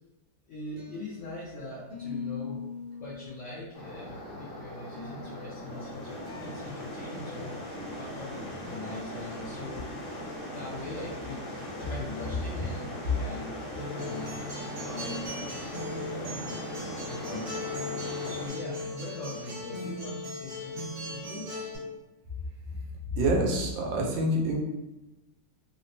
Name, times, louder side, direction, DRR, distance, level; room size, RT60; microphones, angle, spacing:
voice 1, 0.5-2.6 3.0-10.0 10.5-13.5 13.8-14.4 14.8-15.4 15.6-17.5 17.8-21.5, left 2 dB, 85° left, -6 dB, 0.6 m, -42 dB
sound 1, 0.6-1.5 1.9-4.1 4.7-7.1 7.4-7.5 7.9-8.0 9.5-9.6 10.0-10.1 13.7-14.4 14.9-15.3, left 5 dB, 70° right, 1.4 m, -43 dB
sound 2, 3.7-18.5, equal, 50° left, 1.0 m, -39 dB
Acoustic guitar, 13.8-21.8, left 2 dB, 50° right, 1.6 m, -38 dB
voice 2, 23.2-24.6, right 1 dB, 90° right, 0 dB, 1.4 m, -26 dB
3.3 x 2.1 x 2.6 m, 1.0 s
omnidirectional pair, 2.0 m